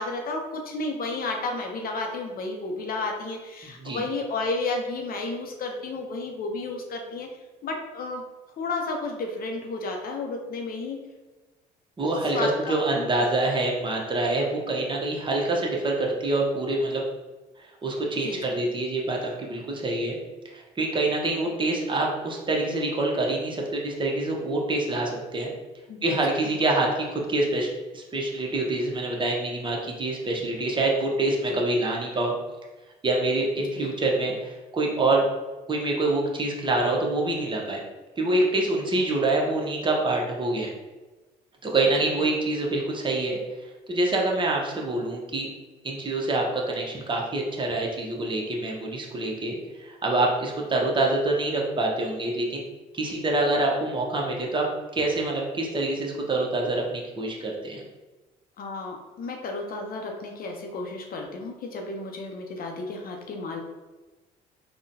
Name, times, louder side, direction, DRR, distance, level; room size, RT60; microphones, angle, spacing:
voice 1, 0.0-7.3 7.6-8.2 8.6-11.0 12.3-13.2 18.2-18.6 25.9-26.6 31.5-31.6 33.7-33.9 42.0-42.1 58.6-63.6, left 3 dB, 45° left, 2 dB, 0.6 m, -32 dB
voice 2, 12.0-17.0 17.8-20.2 20.5-25.5 26.0-32.3 33.0-35.2 35.7-37.8 38.2-40.7 41.6-43.4 43.9-45.5 45.8-52.6 52.9-54.7 54.9-57.8, right 2 dB, 25° right, -1 dB, 0.8 m, -26 dB
3.6 x 2.2 x 2.7 m, 1.2 s
hypercardioid pair, 55°, 20 cm